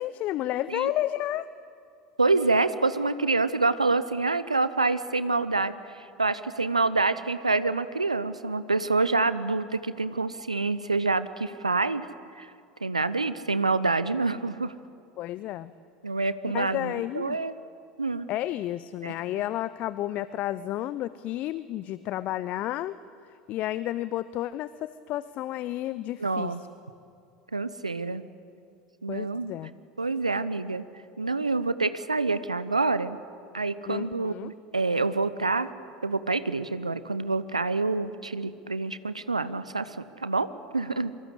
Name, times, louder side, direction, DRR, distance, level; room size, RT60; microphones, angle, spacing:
voice 1, 0.0-1.5 15.2-15.7 16.5-17.4 18.3-22.9 23.3-26.5 29.1-29.7 33.9-34.5, left 14 dB, 45° left, 16 dB, 0.8 m, -31 dB
voice 2, 2.2-12.1 12.4-12.5 12.8-14.7 16.0-17.5 18.0-18.3 19.0-19.2 26.2-26.6 27.5-28.2 29.0-29.5 30.0-30.8 31.2-33.2 33.5-35.7 36.0-40.0 40.2-40.5 40.7-41.1, right 3 dB, 90° right, 14 dB, 0.9 m, -27 dB
26.5 x 24.5 x 8.3 m, 2.4 s
figure-of-eight pair, 75°, 3 cm